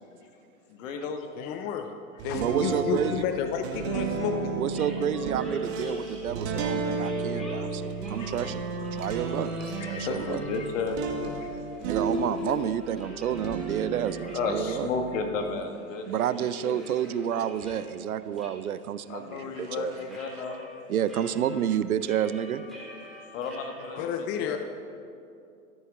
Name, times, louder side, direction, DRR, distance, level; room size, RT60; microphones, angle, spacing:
voice 1, 0.7-1.3 7.0-7.1 7.3-9.1 10.0-11.0 11.2-11.4 11.7-11.9 14.3-16.1 16.4-16.8 19.1-20.6 23.3-24.1 24.4-24.6, left 4 dB, 60° left, 5 dB, 1.6 m, -34 dB
voice 2, 1.4-1.9 2.2-4.6 24.0-24.6, left 8 dB, 25° left, 7 dB, 0.5 m, -31 dB
sound 1, 2.2-12.8 13.2-15.6, right 3 dB, 40° right, 2.0 m, -33 dB
voice 3, 2.4-3.3 4.5-9.5 10.1-10.4 11.8-14.9 16.1-20.2 20.9-22.7, right 9 dB, 75° right, 15 dB, 0.7 m, -30 dB
sound 2, 4.7-6.5 7.0-11.0 11.3-14.8 15.2-15.3 15.7-17.9 18.4-18.5 18.8-20.7 21.0-24.0, equal, ahead, 3.3 m, -47 dB
14.0 x 13.5 x 3.6 m, 2.6 s
hypercardioid pair, 110°, 44 cm